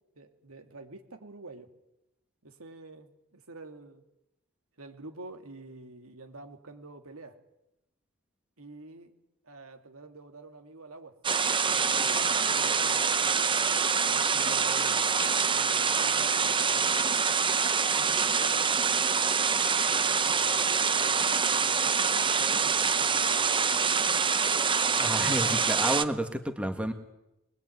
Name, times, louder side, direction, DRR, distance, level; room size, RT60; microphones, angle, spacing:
voice 1, 0.2-1.7 2.4-4.0 4.8-7.4 8.6-9.1 9.4-11.2 11.6-13.0 14.1-15.1 15.5-17.6 17.9-19.0 19.8-23.8 24.8-25.4, right 2 dB, 80° right, 5 dB, 2.6 m, -48 dB
sound 1, 11.2-26.0, right 5 dB, 25° right, 0.9 m, -25 dB
voice 2, 25.0-26.9, right 1 dB, 5° right, 6 dB, 1.9 m, -30 dB
23.5 x 21.0 x 9.4 m, 0.90 s
head